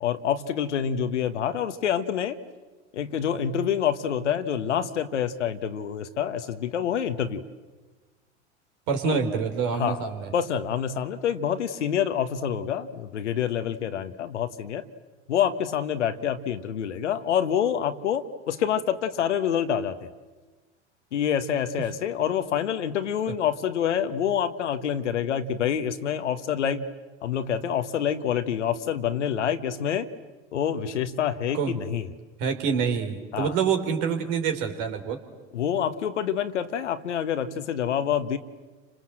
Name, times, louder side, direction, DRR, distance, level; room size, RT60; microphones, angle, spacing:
voice 1, 0.0-2.4 2.9-7.4 9.0-9.2 9.7-10.0 10.3-14.8 15.3-20.1 21.1-26.8 27.2-30.1 30.5-32.1 33.3-33.6 35.5-38.4, left 9 dB, 80° left, 10 dB, 1.5 m, -27 dB
voice 2, 8.9-10.3 31.5-31.8 32.4-35.2, right 6 dB, 55° right, 6 dB, 3.9 m, -26 dB
30.0 x 26.0 x 7.7 m, 1.3 s
hypercardioid pair, 80°, 35 cm